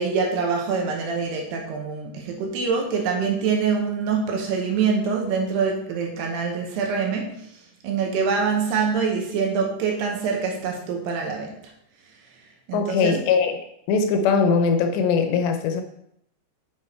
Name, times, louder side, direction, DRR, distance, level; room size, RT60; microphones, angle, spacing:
voice 1, 0.0-7.3 7.8-11.6 12.7-13.1, right 5 dB, 75° right, 1 dB, 2.9 m, -25 dB
voice 2, 12.7-13.5 13.9-15.8, left 5 dB, 80° left, 6 dB, 2.8 m, -21 dB
7.7 x 6.0 x 4.4 m, 0.75 s
omnidirectional pair, 5.2 m